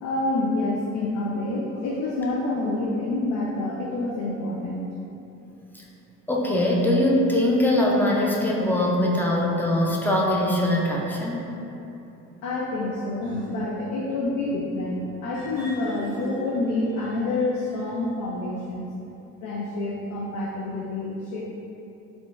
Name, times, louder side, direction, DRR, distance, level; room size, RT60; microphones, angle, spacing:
voice 1, 0.0-4.9 12.4-18.9 19.4-21.4, left 2 dB, 70° left, -4 dB, 0.4 m, -27 dB
voice 2, 6.3-11.5, left 1 dB, 5° left, -3 dB, 0.4 m, -22 dB
3.6 x 2.2 x 2.4 m, 2.9 s
cardioid pair, 90°, 30 cm